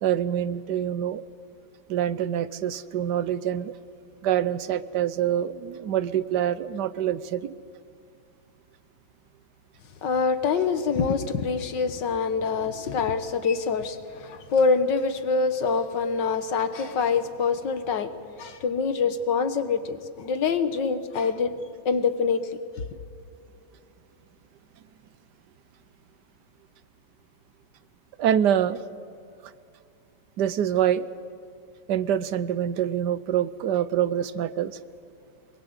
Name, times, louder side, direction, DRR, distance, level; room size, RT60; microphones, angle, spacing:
voice 1, 0.0-1.2 1.9-3.7 4.2-7.5 28.2-28.8 30.4-31.1 31.9-34.8, right 10 dB, 70° right, 16 dB, 1.3 m, -25 dB
voice 2, 10.0-18.1 18.4-21.5 21.9-22.5, left 5 dB, 75° left, 11 dB, 1.9 m, -25 dB
24.0 x 22.5 x 8.1 m, 2.4 s
omnidirectional pair, 1.9 m